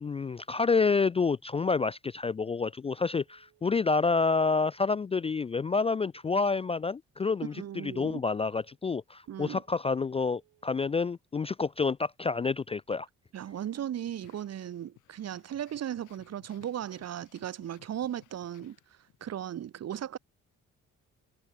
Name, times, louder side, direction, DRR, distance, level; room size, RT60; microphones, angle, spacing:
voice 1, 0.0-13.1, left 4 dB, 20° left, 0.3 m, -28 dB
Telephone, 2.3-2.8 3.3-3.8 4.3-4.8 5.3-5.8 6.3-6.8 7.3-7.8 8.3-8.8 9.3-9.8 10.3-10.8, right 15 dB, 90° right, 5.6 m, -68 dB
voice 2, 7.4-8.2 9.3-9.6 13.3-18.8 19.2-20.2, right 10 dB, 55° right, 1.3 m, -37 dB
sound 1, 14.1-19.3, left 15 dB, 85° left, 4.9 m, -61 dB
cardioid pair, 90°, 30 cm